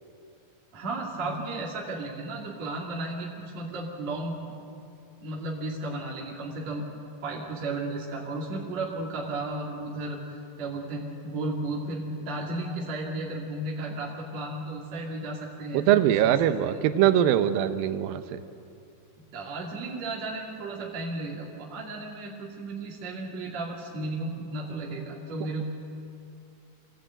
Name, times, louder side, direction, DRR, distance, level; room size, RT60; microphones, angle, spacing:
voice 1, 0.7-4.4 5.2-6.8 7.2-16.8 19.3-25.6, right 2 dB, 50° right, -3 dB, 3.5 m, -34 dB
voice 2, 15.7-18.4, right 11 dB, 75° right, 10 dB, 2.6 m, -22 dB
26.5 x 18.0 x 9.0 m, 2.6 s
omnidirectional pair, 4.4 m